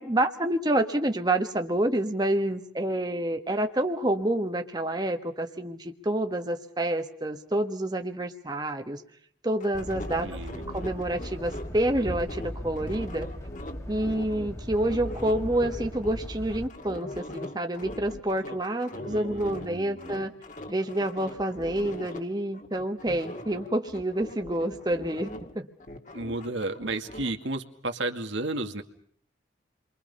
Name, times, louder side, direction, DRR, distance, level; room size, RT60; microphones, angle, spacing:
voice 1, 0.0-9.0 9.4-10.3 10.7-13.3 13.9-20.3 20.7-25.7, right 1 dB, 20° right, 5 dB, 1.4 m, -28 dB
sound 1, 9.6-14.5 14.8-19.7 20.0-22.2 22.5-25.5 25.8-27.3, left 1 dB, 40° left, 2.3 m, -41 dB
sound 2, 9.7-16.7, equal, 15° left, 1.6 m, -38 dB
voice 2, 10.2-10.6 18.9-20.2 26.1-28.8, right 2 dB, 75° right, 5 dB, 2.2 m, -33 dB
30.0 x 23.5 x 5.5 m, 0.63 s
head